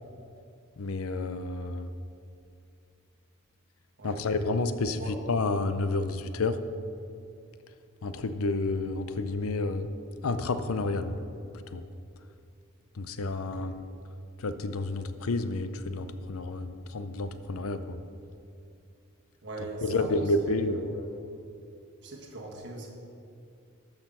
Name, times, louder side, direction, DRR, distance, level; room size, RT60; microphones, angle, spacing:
voice 1, 0.8-1.9 4.0-6.6 8.0-9.9 10.2-11.2 11.5-11.8 12.9-13.7 14.4-18.0 19.8-20.8, left 2 dB, 75° left, 11 dB, 0.6 m, -30 dB
voice 2, 13.4-13.7 19.4-20.1 20.5-21.1 22.0-22.9, right 2 dB, 55° right, -2 dB, 1.8 m, -41 dB
12.0 x 6.6 x 5.5 m, 2.5 s
head